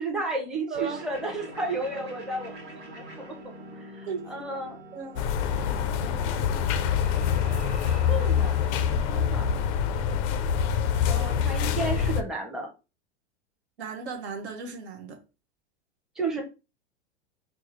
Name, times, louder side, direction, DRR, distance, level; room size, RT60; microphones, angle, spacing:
voice 1, 0.0-2.5 2.9-4.8 7.9-8.6 9.1-9.5 11.1-12.7 16.2-16.4, right 2 dB, ahead, 0.7 m, -32 dB
sound 1, 0.7-9.7, right 1 dB, 30° right, 1.1 m, -45 dB
voice 2, 0.7-1.0 4.1-4.2 4.9-5.2 13.8-15.2, right 6 dB, 70° right, 1.0 m, -35 dB
sound 2, 5.2-12.2, left 8 dB, 35° left, 0.4 m, -25 dB
4.5 x 2.0 x 3.1 m
hypercardioid pair, 95°, 34 cm